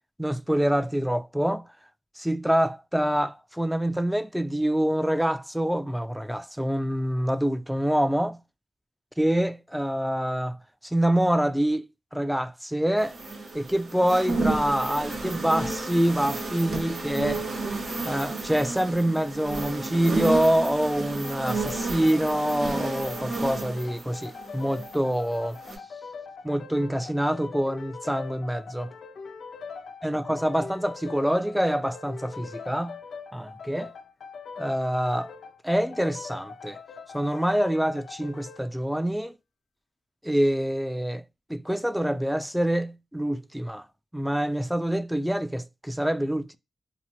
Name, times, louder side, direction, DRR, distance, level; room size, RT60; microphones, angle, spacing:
voice 1, 0.2-1.6 2.2-8.4 9.2-10.6 10.8-11.9 12.1-13.2 13.5-17.4 18.0-25.6 26.4-28.9 30.0-33.0 33.3-33.9 34.6-35.3 35.6-36.8 37.1-39.3 40.2-41.2 41.5-43.9 44.1-46.6, equal, 5° right, 0.3 m, -26 dB
sound 1, 13.0-25.1 25.5-25.8, right 3 dB, 80° right, 0.8 m, -32 dB
sound 2, 21.2-38.7, left 5 dB, 80° left, 0.4 m, -42 dB
2.8 x 2.0 x 2.9 m
cardioid pair, 50°, 0 cm